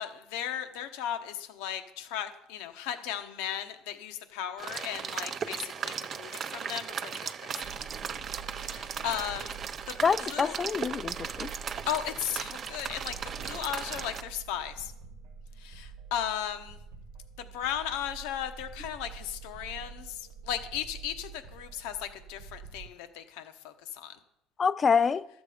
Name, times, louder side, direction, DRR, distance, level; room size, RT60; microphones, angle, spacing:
voice 1, 0.0-7.6 8.5-9.6 9.9-10.6 11.9-14.9 15.6-16.8 17.4-24.2, left 10 dB, 80° left, 1.0 m, -36 dB
sound 1, 4.6-14.2, right 7 dB, 40° right, 0.6 m, -37 dB
sound 2, 7.6-22.9, right 5 dB, 75° right, 1.0 m, -47 dB
voice 2, 10.0-11.5 24.6-25.3, left 6 dB, 30° left, 0.4 m, -26 dB
12.5 x 7.4 x 5.0 m
supercardioid pair, 105°, 0 cm